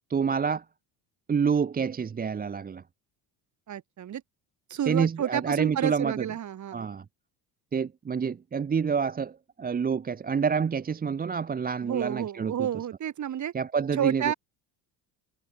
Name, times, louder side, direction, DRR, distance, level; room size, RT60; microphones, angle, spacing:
voice 1, 0.1-0.6 1.3-2.8 4.9-6.3 6.7-7.0 7.7-12.7 13.5-14.3, right 6 dB, 20° right, 0.9 m, -28 dB
voice 2, 3.7-4.2 4.7-6.9 11.8-13.5 14.0-14.3, right 10 dB, 45° right, 7.2 m, -30 dB
cardioid pair, 130°, 39 cm